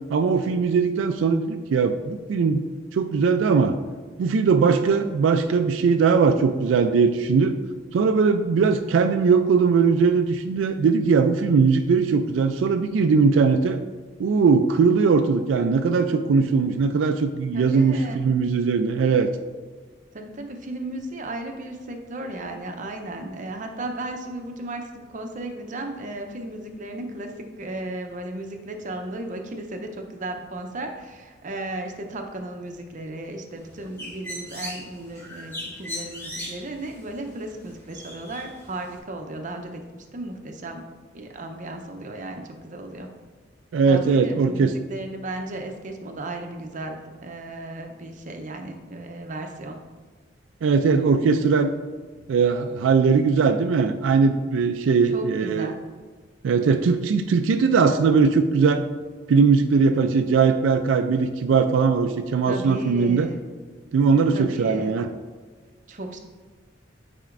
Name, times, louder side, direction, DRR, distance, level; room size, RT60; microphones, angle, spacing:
voice 1, 0.1-2.6 2.9-3.8 4.2-7.5 7.9-13.8 14.2-19.3 43.7-44.7 50.6-51.7 52.3-55.7 56.4-58.8 59.3-63.3 63.9-65.1, right 5 dB, 85° right, 7 dB, 0.3 m, -20 dB
voice 2, 17.5-18.2 20.1-40.8 41.1-43.1 43.9-49.8 55.0-55.8 62.5-63.4 64.3-64.9 65.9-66.2, right 2 dB, 45° right, 4 dB, 0.7 m, -35 dB
Bird, 33.6-39.0, left 1 dB, 15° left, 1.6 m, -39 dB
8.8 x 4.3 x 2.5 m, 1.4 s
head